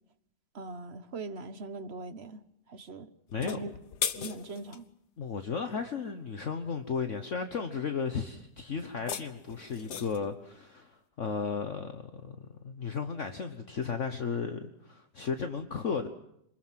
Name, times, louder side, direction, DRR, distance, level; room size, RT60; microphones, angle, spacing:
voice 1, 0.5-3.1 3.4-3.8 4.2-4.9, right 3 dB, 40° right, 1.5 m, -41 dB
sound 1, 3.3-4.8 8.8-10.3, left 8 dB, 75° left, 1.7 m, -37 dB
voice 2, 5.2-16.1, left 5 dB, 50° left, 1.5 m, -34 dB
27.0 x 21.0 x 7.5 m
omnidirectional pair, 1.8 m